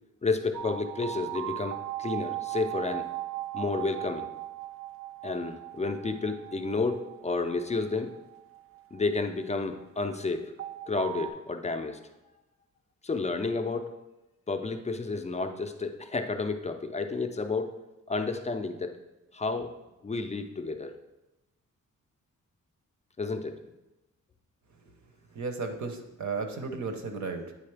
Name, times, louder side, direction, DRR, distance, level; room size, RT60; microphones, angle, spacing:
voice 1, 0.2-3.1 3.5-4.3 5.2-8.1 8.9-10.5 10.9-12.1 13.0-13.9 14.5-17.7 18.1-19.0 19.3-19.7 20.0-21.0 23.2-23.6, left 3 dB, 20° left, 6 dB, 0.3 m, -31 dB
sound 1, 0.5-9.6 10.6-11.3, right 14 dB, 45° right, 0.4 m, -38 dB
voice 2, 25.3-27.5, right 4 dB, 60° right, 6 dB, 0.7 m, -35 dB
8.6 x 3.8 x 3.3 m, 0.97 s
wide cardioid pair, 160°, 33 cm